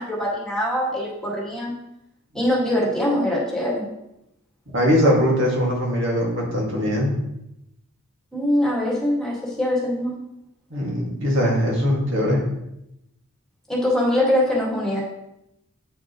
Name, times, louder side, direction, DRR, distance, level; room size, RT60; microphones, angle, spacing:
voice 1, 0.0-1.7 2.3-3.9 8.3-10.1 13.7-15.0, left 1 dB, 5° left, -5 dB, 1.8 m, -23 dB
voice 2, 4.7-7.1 10.7-12.4, equal, 60° right, -3 dB, 2.0 m, -21 dB
8.7 x 6.1 x 3.0 m, 0.85 s
head